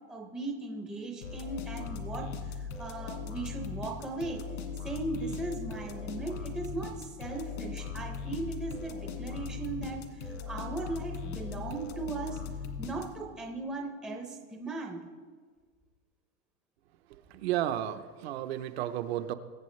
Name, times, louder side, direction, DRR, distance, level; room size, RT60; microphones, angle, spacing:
voice 1, 0.1-4.4 4.8-12.4 12.8-15.0, right 3 dB, ahead, 0 dB, 0.5 m, -38 dB
sound 1, 1.2-13.4, left 5 dB, 85° left, 1.9 m, -39 dB
voice 2, 17.3-19.3, right 12 dB, 60° right, 10 dB, 0.8 m, -32 dB
22.0 x 8.5 x 3.2 m, 1.5 s
supercardioid pair, 180°, 36 cm